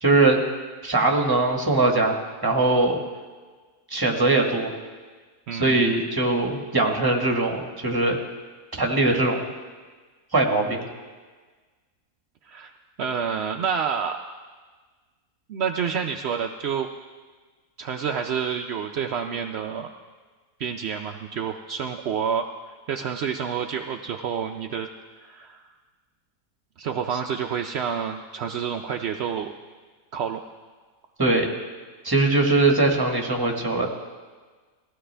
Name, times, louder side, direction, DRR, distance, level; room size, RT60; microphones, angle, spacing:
voice 1, 0.0-0.4 0.8-3.0 3.9-4.7 5.5-8.2 8.7-9.5 10.3-10.9 31.2-31.5 32.0-33.9, right 2 dB, 15° right, 1 dB, 1.4 m, -21 dB
voice 2, 5.5-5.9 12.4-12.7 13.0-14.2 15.5-16.9 17.8-19.9 20.6-22.5 22.9-24.9 25.2-25.6 26.8-29.5 30.1-30.4, right 7 dB, 70° right, 4 dB, 0.6 m, -28 dB
19.0 x 15.0 x 3.4 m, 1.4 s
omnidirectional pair, 1.7 m